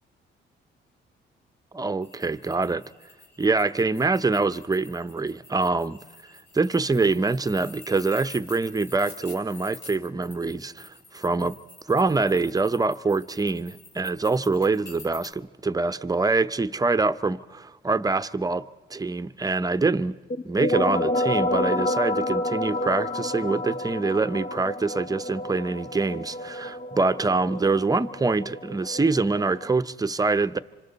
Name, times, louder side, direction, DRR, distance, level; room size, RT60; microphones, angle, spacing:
voice 1, 1.7-2.8 3.4-6.0 6.5-11.6 11.9-18.6 18.9-20.2 20.4-30.6, right 3 dB, 20° right, 0.7 m, -25 dB
sound 1, 2.0-15.3, left 3 dB, 60° left, 4.9 m, -48 dB
sound 2, 20.3-29.7, left 1 dB, 45° left, 1.0 m, -29 dB
27.0 x 25.5 x 4.1 m
cardioid pair, 90°, 20 cm